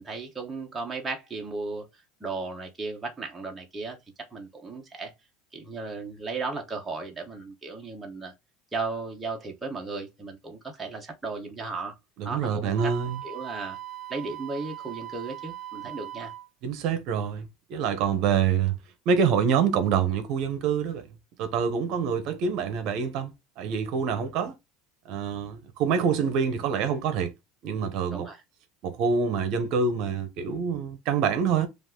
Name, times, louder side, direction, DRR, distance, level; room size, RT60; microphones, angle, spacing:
voice 1, 0.0-1.9 2.2-4.0 4.3-5.1 5.5-8.3 8.7-11.9 12.2-12.9 13.2-13.8 14.1-16.3 28.1-28.4, right 3 dB, 10° right, 0.9 m, -35 dB
voice 2, 12.2-13.2 16.6-18.7 19.1-21.0 21.4-24.5 25.1-27.3 27.6-28.3 28.8-31.7, right 6 dB, 50° right, 0.8 m, -26 dB
Wind instrument woodwind instrument, 12.8-16.5, right 13 dB, 30° right, 0.5 m, -40 dB
5.2 x 2.5 x 3.7 m
cardioid pair, 160°, 0 cm